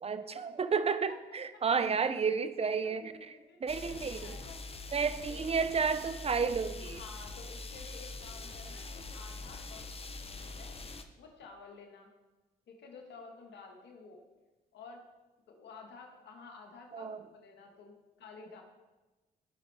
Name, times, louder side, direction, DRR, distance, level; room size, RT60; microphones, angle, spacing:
voice 1, 0.0-3.1 3.6-4.4 4.9-7.0 16.9-17.2, right 5 dB, 35° right, 12 dB, 0.6 m, -31 dB
voice 2, 2.8-4.6 5.3-5.4 6.8-9.8 10.4-10.8 11.2-12.1 12.7-14.2 14.7-15.0 15.5-18.6, left 4 dB, 75° left, 2 dB, 1.4 m, -52 dB
sound 1, 3.7-11.0, left 3 dB, 35° left, 0.9 m, -44 dB
14.5 x 5.2 x 3.4 m, 1.2 s
supercardioid pair, 55°, 18 cm